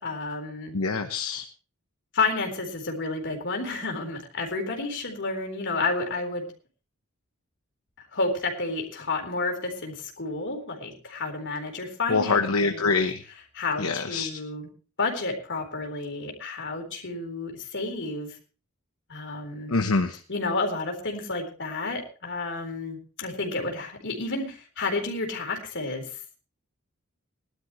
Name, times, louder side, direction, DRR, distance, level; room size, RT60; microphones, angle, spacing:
voice 1, 0.0-0.7 2.1-6.5 8.1-13.0 13.5-14.7 15.0-18.3 19.1-19.7 20.3-26.0, left 3 dB, 55° left, 3 dB, 4.1 m, -31 dB
voice 2, 0.7-1.4 12.1-13.2 13.8-14.3 19.7-20.2, left 4 dB, 80° left, 6 dB, 1.0 m, -25 dB
20.0 x 12.0 x 3.1 m, 0.36 s
head